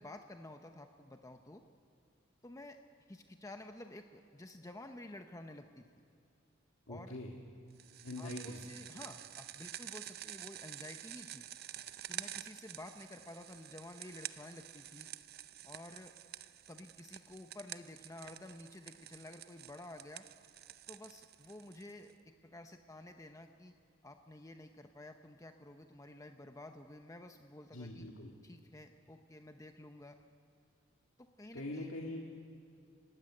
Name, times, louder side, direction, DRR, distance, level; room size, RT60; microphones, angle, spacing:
voice 1, 0.0-1.6 2.4-2.8 3.1-5.9 6.9-7.1 8.2-11.5 12.1-15.1 15.6-16.1 16.7-20.3 20.9-23.7 24.0-28.1 28.4-30.2 31.2-31.9, left 1 dB, 15° left, 6 dB, 0.8 m, -51 dB
voice 2, 6.9-7.3 8.0-8.6 27.7-28.3 31.5-32.2, left 1 dB, 90° left, 0 dB, 2.0 m, -43 dB
sound 1, 7.8-22.1, right 12 dB, 50° right, 0.6 m, -49 dB
25.5 x 16.0 x 9.8 m, 2.5 s
head